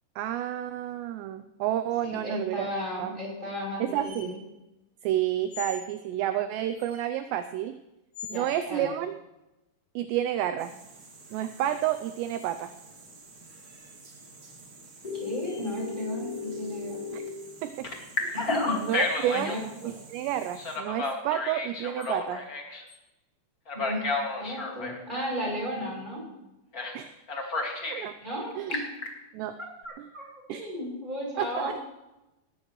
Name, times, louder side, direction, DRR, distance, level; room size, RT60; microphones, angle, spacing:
voice 1, 0.2-2.7 3.0-3.2 3.8-4.3 5.0-7.8 8.3-9.1 10.0-10.7 11.3-12.7 17.1-17.2 17.6-17.9 18.2-18.3 18.9-19.6 19.8-22.4 26.9-27.1 27.9-28.1 28.6-28.8 29.3-29.6 30.0-30.1 30.5-30.6 31.4-31.7, right 11 dB, 80° right, 9 dB, 2.6 m, -30 dB
voice 2, 2.0-4.3 8.3-8.9 15.1-17.0 18.3-18.8 19.3-19.6 23.7-24.0 24.4-26.2 28.2-28.9 29.8-31.7, equal, 10° right, -3 dB, 7.0 m, -34 dB
sound 1, 4.0-4.3 5.5-5.9 6.7-7.0 8.1-8.5 11.5-12.0 13.6-14.3 15.4-15.7 16.0-16.1 18.0-18.1 18.4-18.5 20.2-20.4 22.0-22.1 22.9-23.0, left 4 dB, 45° left, 6.2 m, -45 dB
sound 2, 10.6-20.8, right 3 dB, 35° right, 2.3 m, -51 dB
Telephone, 15.0-17.3 17.8-19.6 20.6-22.8 23.7-25.0 26.7-27.0 27.3-28.1 28.5-29.1, left 3 dB, 75° left, 0.8 m, -32 dB
19.5 x 15.5 x 3.2 m, 0.96 s
omnidirectional pair, 5.5 m